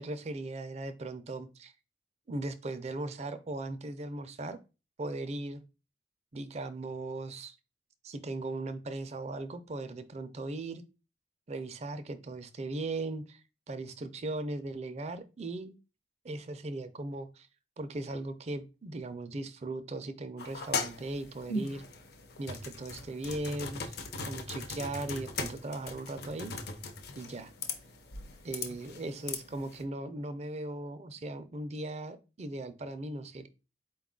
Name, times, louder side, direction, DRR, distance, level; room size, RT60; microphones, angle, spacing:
voice 1, 0.0-1.7 2.3-4.6 5.0-5.6 6.3-7.6 8.0-10.8 11.5-13.4 13.7-15.7 16.2-17.5 17.8-21.8 22.4-23.9 24.3-26.5 27.2-27.5 28.4-33.5, right 2 dB, 40° right, 0.4 m, -38 dB
sound 1, 20.4-29.8, left 3 dB, 60° left, 0.6 m, -39 dB
4.4 x 2.3 x 3.7 m
head